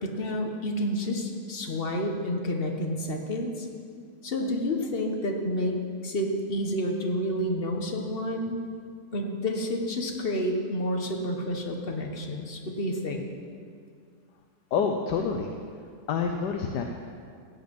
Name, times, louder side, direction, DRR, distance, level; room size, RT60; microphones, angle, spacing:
voice 1, 0.0-3.7 4.2-5.8 6.0-8.6 9.1-13.2, equal, 35° left, 2 dB, 1.3 m, -29 dB
voice 2, 14.7-15.5 16.1-16.8, left 6 dB, 75° left, 3 dB, 1.4 m, -27 dB
16.0 x 8.1 x 5.3 m, 2.2 s
omnidirectional pair, 1.8 m